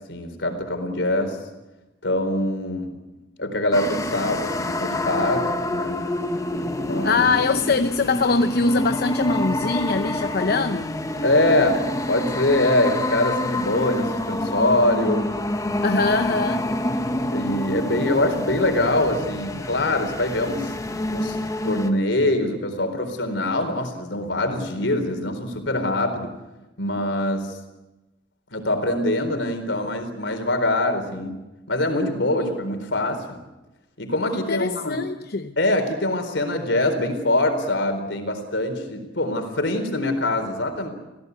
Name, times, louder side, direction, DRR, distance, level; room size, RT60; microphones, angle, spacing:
voice 1, 0.1-1.4 2.0-2.9 3.4-6.0 6.8-7.3 11.2-15.3 15.9-16.0 17.3-20.7 21.1-21.4 21.6-26.3 26.8-27.6 28.5-33.4 34.0-35.0 35.6-40.9, left 1 dB, 80° left, 6 dB, 4.1 m, -24 dB
sound 1, 3.7-21.9, left 1 dB, 20° left, 1.3 m, -27 dB
voice 2, 7.0-10.9 15.8-16.7 32.4-32.6 34.3-35.6, left 4 dB, 60° left, 9 dB, 0.8 m, -23 dB
27.5 x 16.5 x 8.2 m, 1.0 s
head